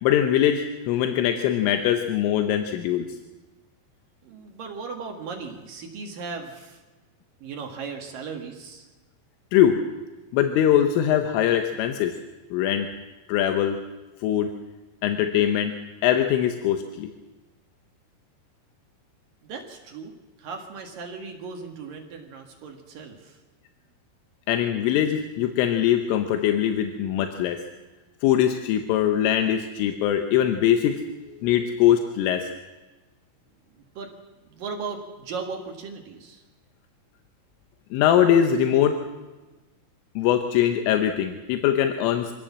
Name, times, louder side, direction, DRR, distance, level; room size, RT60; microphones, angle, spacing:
voice 1, 0.0-3.1 9.5-9.8 10.3-12.2 12.5-12.9 13.3-13.8 14.2-14.5 15.0-15.7 16.0-17.1 24.5-27.6 28.2-31.0 31.4-32.5 37.9-39.0 40.2-42.3, left 10 dB, 85° left, 6 dB, 3.6 m, -22 dB
voice 2, 4.2-6.8 7.4-8.9 19.4-20.1 20.4-23.4 33.7-34.1 34.5-36.4, right 5 dB, 55° right, 3 dB, 2.9 m, -37 dB
25.5 x 16.5 x 7.4 m, 1.2 s
omnidirectional pair, 5.6 m